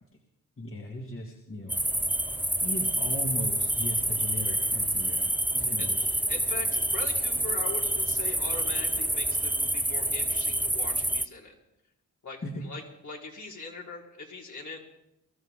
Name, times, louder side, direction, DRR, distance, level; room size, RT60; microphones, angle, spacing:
voice 1, 0.6-1.7 2.6-6.1 12.4-12.6, left 1 dB, 35° left, -2 dB, 2.8 m, -37 dB
sound 1, 1.7-11.3, right 1 dB, 5° right, 0.7 m, -28 dB
voice 2, 5.5-5.9 6.3-11.5 12.2-14.8, left 3 dB, 55° left, -3 dB, 4.6 m, -41 dB
24.0 x 14.0 x 3.9 m, 0.81 s
cardioid pair, 65°, 35 cm